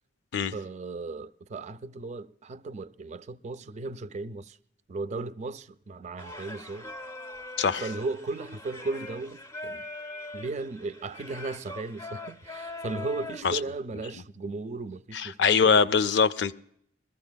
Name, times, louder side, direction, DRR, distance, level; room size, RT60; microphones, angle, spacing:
voice 1, 0.5-4.6 4.9-6.9 7.7-9.9 10.3-15.8, right 3 dB, 40° right, 0.4 m, -36 dB
Singing, 6.2-13.4, left 2 dB, 15° left, 0.5 m, -41 dB
voice 2, 7.6-7.9 13.4-13.6 15.1-16.5, left 6 dB, 70° left, 0.4 m, -23 dB
21.5 x 14.5 x 2.2 m
head